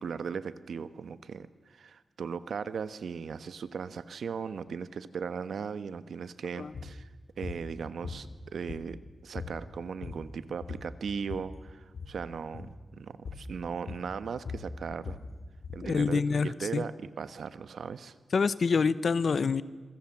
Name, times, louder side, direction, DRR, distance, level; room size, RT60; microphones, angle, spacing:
voice 1, 0.0-7.1 7.4-15.2 15.7-18.1, right 6 dB, 85° right, 13 dB, 1.2 m, -38 dB
sound 1, 6.7-7.0 7.4-7.6 8.0-9.0 9.3-9.6 9.9-10.3 10.6-11.5 11.9-12.2 12.5-12.8 13.2-13.5 13.9-15.9, left 5 dB, 70° left, 3.7 m, -40 dB
voice 2, 15.8-16.8 18.3-19.6, left 5 dB, 55° left, 16 dB, 1.0 m, -26 dB
27.0 x 24.0 x 7.4 m, 1.3 s
wide cardioid pair, 150°, 0 cm